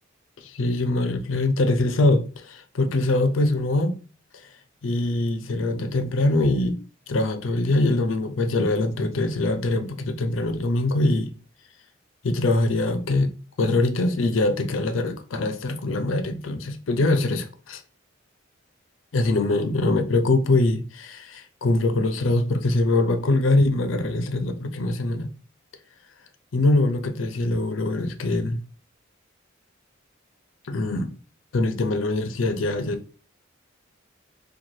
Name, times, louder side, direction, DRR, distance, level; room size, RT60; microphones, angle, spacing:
voice 1, 0.4-3.9 4.8-6.8 7.1-11.3 12.2-13.3 13.6-17.8 19.1-25.3 26.5-28.6 30.7-31.1 31.5-33.2, left 2 dB, 80° left, 0.5 m, -23 dB
3.1 x 2.2 x 2.7 m
head